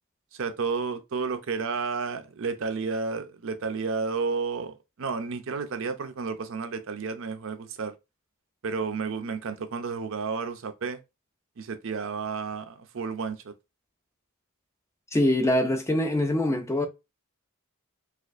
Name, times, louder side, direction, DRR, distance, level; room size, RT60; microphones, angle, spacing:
voice 1, 0.3-7.9 8.6-11.0 11.6-13.5, right 4 dB, 60° right, 0.5 m, -31 dB
voice 2, 15.1-16.9, left 1 dB, 15° left, 0.4 m, -24 dB
4.2 x 2.5 x 2.5 m
head